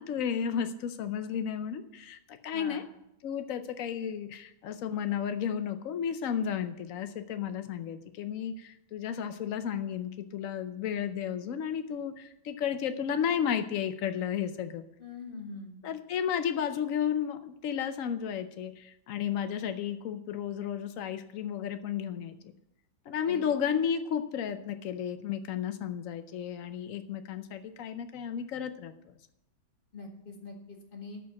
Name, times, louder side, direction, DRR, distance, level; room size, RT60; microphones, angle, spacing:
voice 1, 0.0-2.8 3.2-14.8 15.8-22.5 23.1-29.1, left 8 dB, 90° left, 9 dB, 0.7 m, -33 dB
voice 2, 2.5-2.8 15.0-15.8 23.3-23.5 29.9-31.2, left 3 dB, 25° left, 1 dB, 1.9 m, -43 dB
13.5 x 4.7 x 8.4 m, 0.84 s
omnidirectional pair, 2.2 m